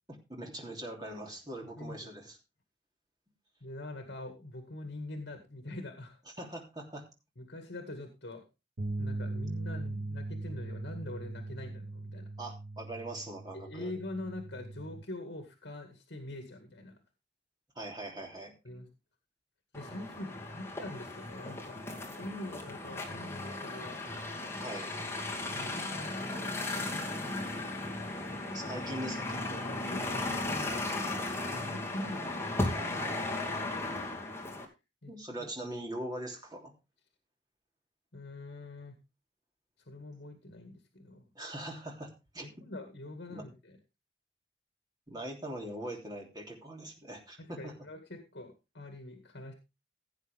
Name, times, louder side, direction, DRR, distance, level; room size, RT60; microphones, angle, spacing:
voice 1, 0.1-2.4 6.4-7.1 12.4-13.9 17.7-18.5 24.6-24.9 28.5-29.6 35.1-36.7 41.3-42.6 43.3-43.4 45.1-47.7, right 1 dB, 20° right, 0 dB, 3.1 m, -42 dB
voice 2, 1.8-2.1 3.6-6.2 7.4-8.4 9.0-12.3 13.5-17.0 18.6-18.9 19.7-24.0 25.5-26.4 26.7-27.7 29.9-31.2 31.5-32.4 35.0-35.1 35.4-35.5 38.1-38.9 39.9-41.3 42.4-43.8 47.4-49.5, left 1 dB, 70° left, 5 dB, 2.0 m, -44 dB
sound 1, 8.8-15.0, right 2 dB, 75° right, 1.2 m, -39 dB
sound 2, 19.7-34.7, left 2 dB, 15° left, 2.4 m, -36 dB
16.5 x 8.2 x 3.6 m, 0.27 s
head